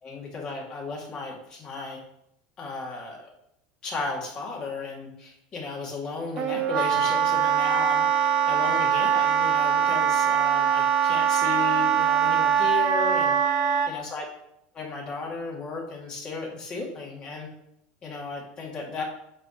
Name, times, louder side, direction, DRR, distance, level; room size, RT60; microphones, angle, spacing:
voice 1, 0.0-2.0 2.6-3.3 3.8-13.3 13.9-14.2 14.7-17.5 18.0-19.0, left 4 dB, 25° left, -2 dB, 2.1 m, -35 dB
Wind instrument woodwind instrument, 6.4-13.9, right 8 dB, 30° right, 0.7 m, -22 dB
8.6 x 3.4 x 6.4 m, 0.79 s
supercardioid pair, 160°, 3 cm